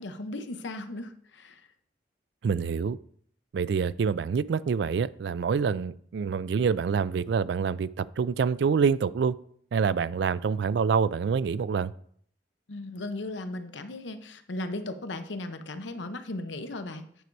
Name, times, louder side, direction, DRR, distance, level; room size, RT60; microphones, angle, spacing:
voice 1, 0.0-1.7 12.7-17.2, left 2 dB, 90° left, 0.8 m, -37 dB
voice 2, 2.4-3.0 3.5-9.4 9.7-11.9, right 6 dB, 70° right, 0.3 m, -26 dB
9.2 x 4.6 x 5.3 m
head